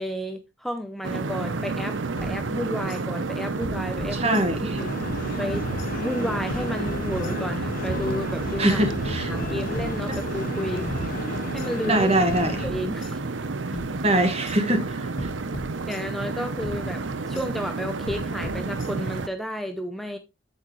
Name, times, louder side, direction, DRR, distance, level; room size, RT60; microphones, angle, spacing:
voice 1, 0.0-4.9 5.4-5.7 5.9-8.8 9.3-10.9 11.5-12.1 12.5-13.2 15.9-20.2, equal, ahead, 0.6 m, -32 dB
sound 1, 1.0-19.3, right 3 dB, 85° right, 0.8 m, -30 dB
sound 2, 2.2-3.0 3.6-4.8 5.1-5.9 6.5-7.6 7.9-8.8 9.4-10.5 10.8-11.7 12.3-13.5 13.7-14.6 15.2-16.3 16.6-17.5 18.1-19.2, left 1 dB, 90° left, 1.6 m, -39 dB
voice 2, 4.1-4.8 8.6-9.3 11.9-12.6 14.0-15.3, right 1 dB, 35° right, 1.5 m, -23 dB
sound 3, 4.8-12.7, left 3 dB, 50° left, 0.6 m, -34 dB
8.6 x 6.7 x 3.1 m
head